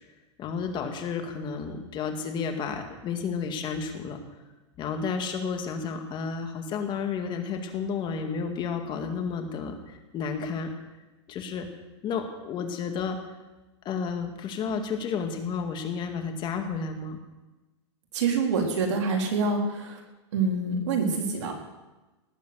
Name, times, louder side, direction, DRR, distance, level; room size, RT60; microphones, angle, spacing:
voice 1, 0.4-4.2 4.8-10.7 11.3-11.7 12.0-13.2 13.9-17.2, left 5 dB, 30° left, 5 dB, 2.1 m, -31 dB
voice 2, 18.1-20.0 20.3-21.5, right 4 dB, 75° right, 0 dB, 4.2 m, -26 dB
18.5 x 7.5 x 8.1 m, 1.1 s
supercardioid pair, 135°, 15 cm